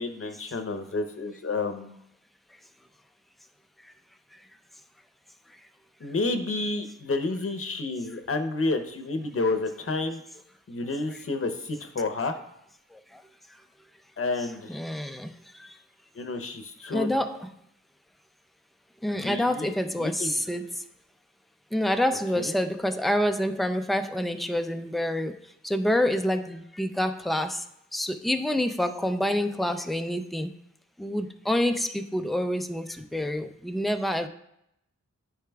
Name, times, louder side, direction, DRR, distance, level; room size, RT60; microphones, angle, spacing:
voice 1, 0.0-2.0 6.0-10.2 10.7-12.4 14.2-14.8 16.1-17.1 19.1-19.7 20.0-20.3 22.4-22.5, left 3 dB, 50° left, 7 dB, 0.8 m, -30 dB
voice 2, 12.9-13.2 14.7-15.8 16.8-17.5 19.0-20.8 21.7-25.3 25.6-27.6 27.9-30.5 31.0-34.3, left 1 dB, ahead, 7 dB, 0.4 m, -27 dB
12.5 x 4.7 x 2.3 m, 0.79 s
wide cardioid pair, 110°, 29 cm